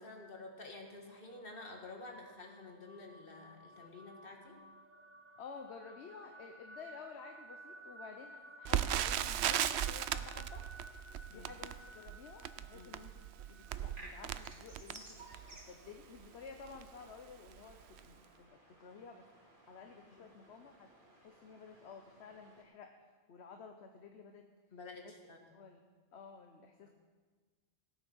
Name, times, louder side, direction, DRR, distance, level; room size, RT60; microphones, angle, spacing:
voice 1, 0.0-4.7 11.3-11.5 12.7-12.9 20.1-20.3 24.7-25.5 26.8-26.9, left 2 dB, 60° left, 2 dB, 2.0 m, -50 dB
sound 1, 0.8-16.0, right 1 dB, 15° right, 0.6 m, -57 dB
voice 2, 5.4-10.6 11.3-15.3 15.5-19.3 19.7-20.9 21.2-22.9 23.3-24.5 25.0-25.1 25.5-25.8 26.1-26.9, left 5 dB, 85° left, 5 dB, 1.2 m, -52 dB
Crackle, 8.7-15.6 16.2-16.3 16.6-16.9 17.5-17.7 18.0-18.1, right 11 dB, 80° right, 0.8 m, -37 dB
sound 2, 13.7-22.6, right 1 dB, 55° right, 2.7 m, -58 dB
16.5 x 8.9 x 6.2 m, 1.4 s
omnidirectional pair, 1.1 m